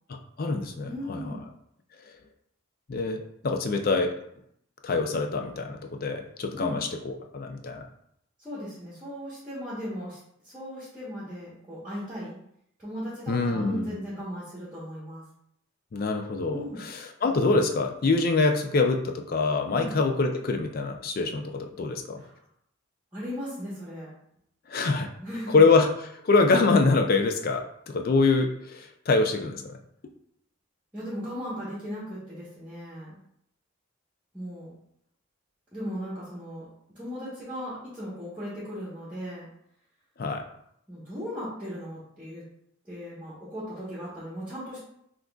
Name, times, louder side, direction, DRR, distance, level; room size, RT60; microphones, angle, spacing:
voice 1, 0.1-1.4 2.9-4.1 4.8-7.8 13.3-13.9 15.9-22.2 24.7-25.1 25.5-29.8 40.2-40.4, left 3 dB, 45° left, 5 dB, 0.4 m, -25 dB
voice 2, 0.8-1.4 6.6-6.8 8.4-10.2 10.4-12.4 12.8-15.2 16.5-16.8 19.7-20.0 22.2-22.3 23.1-24.1 25.2-25.6 30.9-33.2 34.3-34.7 35.7-36.6 36.9-39.5 40.9-42.4 42.8-44.8, equal, 5° right, -9 dB, 1.1 m, -37 dB
5.8 x 2.5 x 2.3 m, 0.72 s
head